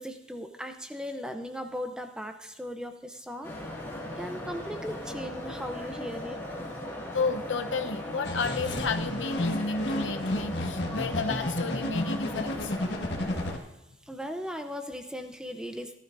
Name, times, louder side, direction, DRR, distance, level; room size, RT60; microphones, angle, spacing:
voice 1, 0.0-3.5 4.2-6.4 14.0-16.0, equal, 5° right, 6 dB, 0.7 m, -37 dB
sound 1, 3.4-13.6, left 1 dB, 15° left, 2.0 m, -38 dB
voice 2, 7.1-12.7, left 4 dB, 80° left, 7 dB, 0.9 m, -31 dB
sound 2, 8.2-13.6, left 1 dB, 60° left, 1.6 m, -32 dB
17.5 x 12.0 x 2.6 m, 0.90 s
head